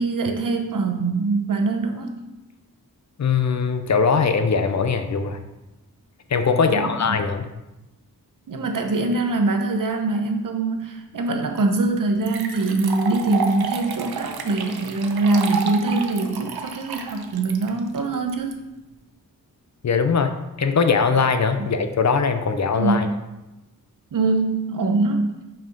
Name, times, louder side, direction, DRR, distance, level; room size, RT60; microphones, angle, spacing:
voice 1, 0.0-2.2 6.6-7.2 8.5-18.6 21.6-21.7 22.8-23.0 24.1-25.3, right 3 dB, 60° right, 4 dB, 1.0 m, -23 dB
voice 2, 3.2-5.4 6.3-7.5 19.8-23.1, left 5 dB, 50° left, 8 dB, 0.6 m, -21 dB
sound 1, 11.6-11.7 12.2-18.5, right 5 dB, 90° right, 0.8 m, -31 dB
6.1 x 4.6 x 5.3 m, 1.0 s
wide cardioid pair, 120°, 36 cm